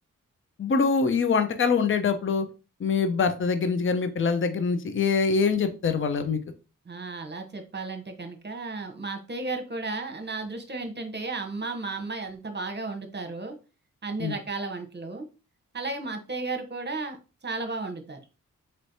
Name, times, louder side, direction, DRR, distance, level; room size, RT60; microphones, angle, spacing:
voice 1, 0.6-2.5 2.8-6.4 14.2-14.4, left 5 dB, 40° left, 9 dB, 0.6 m, -24 dB
voice 2, 6.8-13.5 14.0-15.3 15.7-18.2, right 3 dB, 30° right, 6 dB, 1.0 m, -34 dB
4.3 x 3.1 x 2.7 m, 0.32 s
cardioid pair, 55°, 32 cm